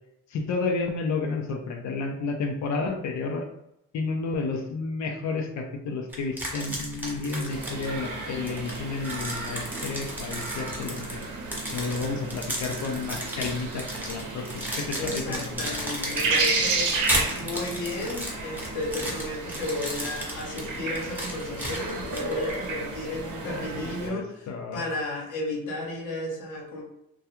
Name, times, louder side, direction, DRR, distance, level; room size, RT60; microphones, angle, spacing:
voice 1, 0.3-3.5 3.9-11.3 11.7-15.8 23.4-24.8, left 4 dB, 65° left, 4 dB, 0.5 m, -31 dB
sound 1, 6.1-8.1 8.5-22.7, right 1 dB, 5° right, 0.8 m, -34 dB
sound 2, 7.5-24.1, right 3 dB, 85° right, 0.7 m, -33 dB
voice 2, 14.9-16.9 17.3-26.8, left 2 dB, 85° left, -1 dB, 0.9 m, -33 dB
2.3 x 2.2 x 2.9 m, 0.82 s
cardioid pair, 90°, 30 cm